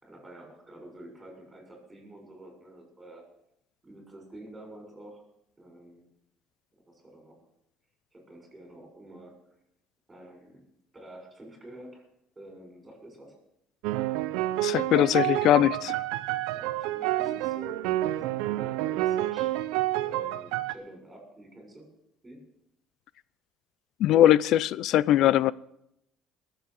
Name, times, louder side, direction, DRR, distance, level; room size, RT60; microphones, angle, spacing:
voice 1, 0.0-3.2 3.8-5.2 5.6-6.1 6.8-7.4 8.1-9.4 10.1-10.6 10.9-12.0 12.3-13.4 16.5-19.5 20.0-21.9 22.2-22.4, right 1 dB, 15° right, 6.5 m, -48 dB
sound 1, 13.8-20.7, right 15 dB, 85° right, 0.6 m, -29 dB
voice 2, 14.6-15.9 24.0-25.5, left 12 dB, 60° left, 0.4 m, -21 dB
21.0 x 7.9 x 6.4 m
cardioid pair, 120°, 0 cm